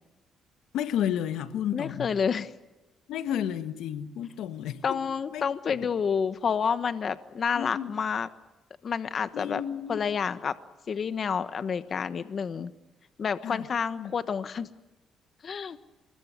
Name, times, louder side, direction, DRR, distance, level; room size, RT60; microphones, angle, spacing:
voice 1, 0.7-2.1 3.1-5.0 5.3-5.8 7.6-7.9 9.3-10.0 13.4-13.7 14.0-14.1, left 10 dB, 85° left, 1.4 m, -32 dB
voice 2, 1.7-2.5 4.8-8.3 8.8-9.6 9.9-10.5 10.9-12.7 13.2-14.7 15.4-15.8, left 6 dB, 50° left, 1.2 m, -29 dB
26.0 x 21.5 x 8.3 m
cardioid pair, 90°, 0 cm